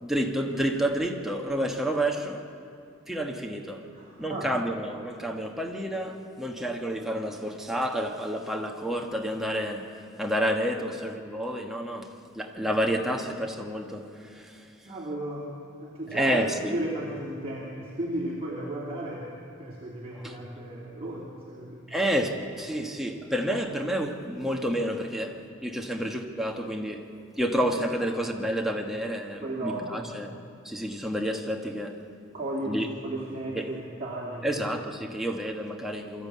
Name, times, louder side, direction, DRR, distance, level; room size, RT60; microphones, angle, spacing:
voice 1, 0.0-2.4 3.1-3.9 4.2-9.9 10.2-14.6 16.1-16.7 20.1-20.4 21.9-22.3 22.6-27.1 27.4-30.3 30.6-32.0 32.6-32.9 33.5-33.7 34.4-36.3, equal, ahead, 1 dB, 1.3 m, -29 dB
voice 2, 3.9-4.5 14.8-15.5 15.8-16.3 16.7-19.3 19.6-21.8 29.4-30.1 32.3-34.4, right 1 dB, 30° right, -5 dB, 2.7 m, -35 dB
23.5 x 13.5 x 8.4 m, 2.5 s
head